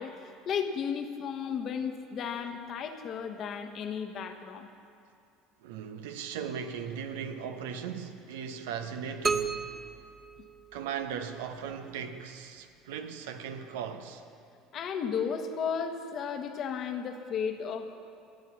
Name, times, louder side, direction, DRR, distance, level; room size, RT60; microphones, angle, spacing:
voice 1, 0.0-4.7 14.7-17.8, left 7 dB, 50° left, 1.3 m, -34 dB
voice 2, 5.6-9.7 10.7-14.2, right 7 dB, 75° right, 0.9 m, -38 dB
sound 1, 9.2-11.2, right 5 dB, 25° right, 0.5 m, -33 dB
14.0 x 8.9 x 7.0 m
hypercardioid pair, 70°, 0 cm